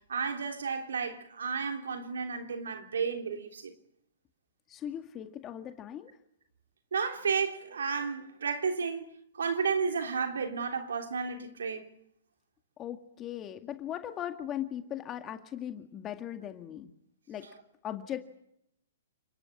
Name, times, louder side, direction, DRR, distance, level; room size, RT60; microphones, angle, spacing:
voice 1, 0.1-3.7 6.9-9.1 9.4-11.8, right 5 dB, 80° right, 3.3 m, -32 dB
voice 2, 4.7-6.1 12.8-16.9 17.3-17.5 17.8-18.2, left 10 dB, 25° left, 2.0 m, -38 dB
29.5 x 19.5 x 8.7 m
hypercardioid pair, 130°, 0 cm